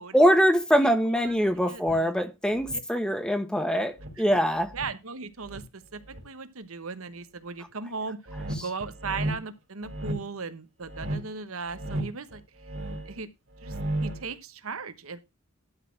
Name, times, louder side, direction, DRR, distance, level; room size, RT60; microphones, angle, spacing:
voice 1, 0.1-4.7, equal, 5° left, 1.3 m, -23 dB
voice 2, 0.8-1.4 1.7-2.1 4.7-5.6 5.9-8.2 8.6-12.4 13.1-13.3 13.6-13.7 14.0-15.2, right 4 dB, 80° right, 1.2 m, -37 dB
sound 1, 1.9-2.0 2.6-2.8 4.0-4.9 5.4-6.2 8.3-9.4 9.8-10.3 10.8-11.3 11.7-13.2 13.5-14.3, right 1 dB, 60° right, 3.0 m, -34 dB
12.0 x 4.3 x 5.8 m
head